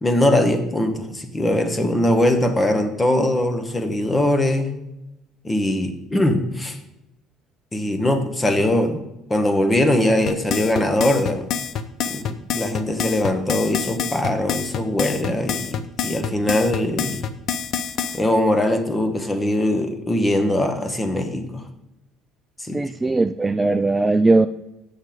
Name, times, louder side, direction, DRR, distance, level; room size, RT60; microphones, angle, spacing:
voice 1, 0.0-4.7 5.4-6.8 7.7-11.5 12.1-17.2 18.1-21.6 22.6-23.2, left 1 dB, 20° left, 7 dB, 1.1 m, -21 dB
sound 1, 10.3-18.2, left 8 dB, 60° left, 0.6 m, -26 dB
voice 2, 22.7-24.5, right 2 dB, 20° right, 9 dB, 0.3 m, -19 dB
7.5 x 6.6 x 4.7 m, 0.90 s
supercardioid pair, 90°, 0 cm